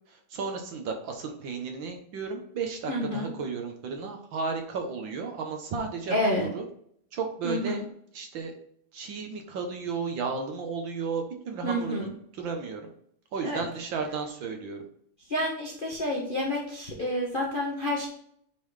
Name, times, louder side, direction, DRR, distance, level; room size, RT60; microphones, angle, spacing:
voice 1, 0.1-6.7 7.1-7.8 8.1-8.5 8.9-12.1 12.3-12.9 13.3-14.8, right 5 dB, 65° right, 3 dB, 1.6 m, -33 dB
voice 2, 2.9-3.3 6.1-6.5 7.4-7.8 11.6-12.1 13.4-13.6 15.3-18.1, left 1 dB, 35° left, -3 dB, 0.9 m, -29 dB
8.6 x 3.8 x 3.2 m, 0.65 s
omnidirectional pair, 2.4 m